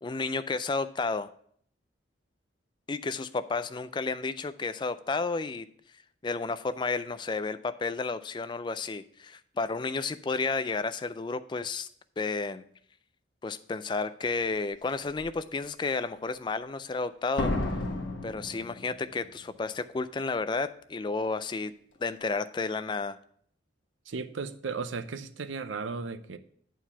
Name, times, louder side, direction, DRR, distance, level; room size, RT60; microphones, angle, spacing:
voice 1, 0.0-1.3 2.9-5.7 6.2-11.9 12.2-12.6 13.4-17.5 18.2-21.7 22.0-23.2, left 4 dB, 25° left, 13 dB, 0.3 m, -32 dB
Slam, 14.2-14.3 14.9-15.3 17.4-19.3 19.5-19.6, left 2 dB, 75° left, 1.2 m, -33 dB
voice 2, 24.1-26.4, right 4 dB, 85° right, 11 dB, 0.6 m, -35 dB
8.8 x 4.6 x 5.6 m, 0.63 s
head